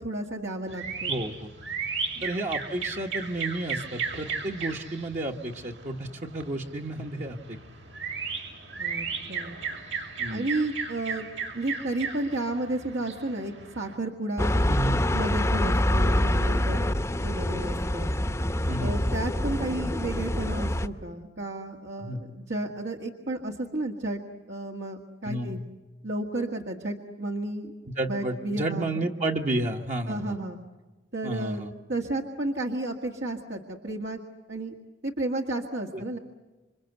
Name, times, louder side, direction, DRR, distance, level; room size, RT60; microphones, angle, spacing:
voice 1, 0.0-1.1 2.1-2.4 8.8-9.6 10.3-11.3 11.5-14.6 15.1-16.9 17.2-18.1 18.8-24.2 24.5-25.6 26.0-27.7 28.1-29.1 30.1-30.6 31.1-31.6 31.9-34.2 34.5-34.7 35.0-36.2, right 2 dB, 70° right, 1 dB, 1.8 m, -32 dB
sound 1, 0.7-14.0, right 5 dB, 85° right, 6.3 m, -35 dB
voice 2, 1.1-1.5 2.2-7.6 10.2-10.5 14.7-15.0 18.7-19.0 22.0-22.2 25.2-25.6 28.0-30.4 31.2-31.7 35.9-36.0, right 1 dB, 40° right, 1 dB, 1.3 m, -31 dB
sound 2, 14.4-20.9, left 1 dB, 15° left, 0.9 m, -26 dB
27.5 x 26.0 x 8.1 m, 1.2 s
head